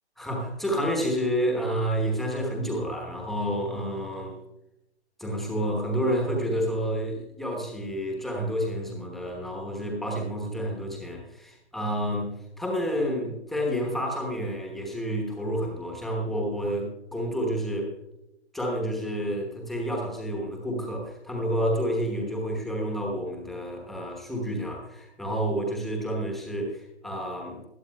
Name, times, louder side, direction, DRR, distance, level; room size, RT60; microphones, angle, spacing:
voice 1, 0.2-4.4 5.2-16.9 17.1-17.9 18.5-27.7, equal, ahead, 0 dB, 1.1 m, -29 dB
20.0 x 12.5 x 2.3 m, 0.92 s
figure-of-eight pair, 145°, 34 cm